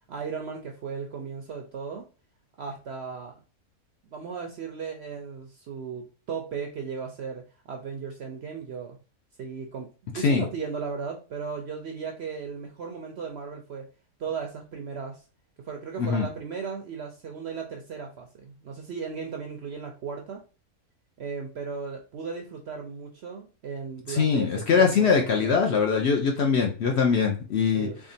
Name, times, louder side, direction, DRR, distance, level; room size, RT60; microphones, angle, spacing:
voice 1, 0.1-2.0 2.6-3.3 4.1-9.0 9.4-13.8 14.2-15.2 15.6-20.4 21.2-25.7 27.7-28.0, right 5 dB, 65° right, 3 dB, 0.6 m, -36 dB
voice 2, 24.1-27.9, left 5 dB, 60° left, 2 dB, 0.7 m, -22 dB
3.6 x 3.4 x 2.6 m, 0.35 s
omnidirectional pair, 1.6 m